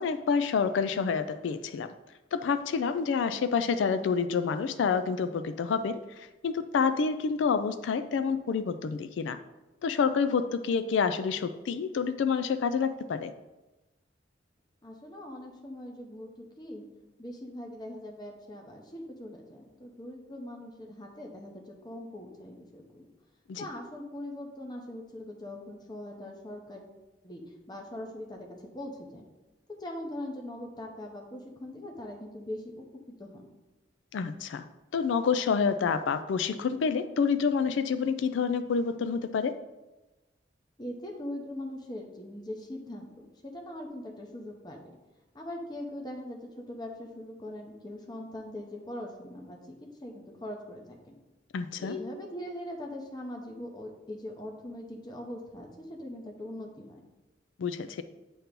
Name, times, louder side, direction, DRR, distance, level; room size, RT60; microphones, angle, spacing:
voice 1, 0.0-1.9 2.3-9.4 9.8-13.3 23.5-23.7 34.1-34.6 34.9-39.6 51.5-52.0 57.6-58.0, left 5 dB, 80° left, 11 dB, 0.3 m, -28 dB
voice 2, 14.8-16.9 17.2-23.1 23.6-26.9 27.2-27.4 27.7-29.2 29.8-32.9 33.2-33.4 40.8-43.1 43.4-44.9 45.3-51.1 51.8-57.0, left 1 dB, 20° left, 1 dB, 0.8 m, -41 dB
7.8 x 3.0 x 5.1 m, 1.1 s
head